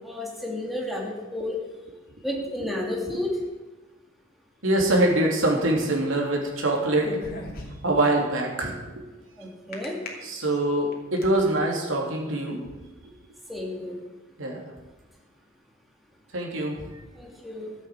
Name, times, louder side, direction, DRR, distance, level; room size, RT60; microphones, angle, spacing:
voice 1, 0.0-1.6 2.2-3.3 9.4-10.0 13.5-13.9 17.2-17.7, left 1 dB, ahead, -2 dB, 2.7 m, -31 dB
voice 2, 4.6-7.1 7.8-8.8 10.2-12.6 14.4-14.6 16.3-16.8, right 1 dB, 75° right, 0 dB, 3.1 m, -24 dB
sound 1, 6.8-8.0 9.7-10.1 10.7-11.4, left 1 dB, 45° left, 2.6 m, -37 dB
14.0 x 8.3 x 7.4 m, 1.2 s
head